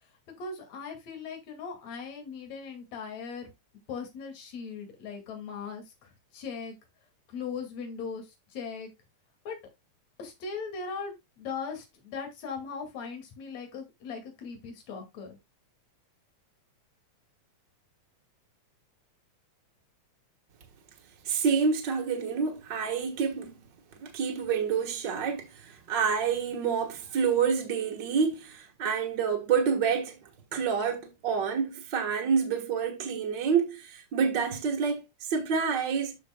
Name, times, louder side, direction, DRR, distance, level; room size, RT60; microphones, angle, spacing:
voice 1, 0.4-3.5 3.9-6.7 7.3-8.9 9.4-9.6 10.2-15.4, left 5 dB, 65° left, 3.4 m, -39 dB
voice 2, 21.2-23.5 24.0-30.2 30.5-36.2, right 6 dB, 45° right, 1.8 m, -28 dB
13.5 x 4.6 x 2.2 m
omnidirectional pair, 3.3 m